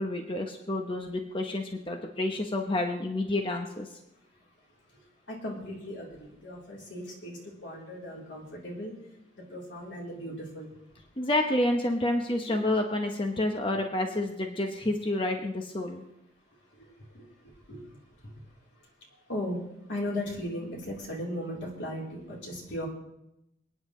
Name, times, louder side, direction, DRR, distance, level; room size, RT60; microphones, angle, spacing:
voice 1, 0.0-4.0 11.2-16.0, left 1 dB, 30° left, 3 dB, 1.0 m, -29 dB
voice 2, 4.9-9.0 9.3-10.7 12.5-12.6 16.7-18.4 18.8-18.9 19.3-22.9, left 1 dB, 80° left, -3 dB, 3.8 m, -38 dB
27.5 x 9.7 x 3.2 m, 0.84 s
head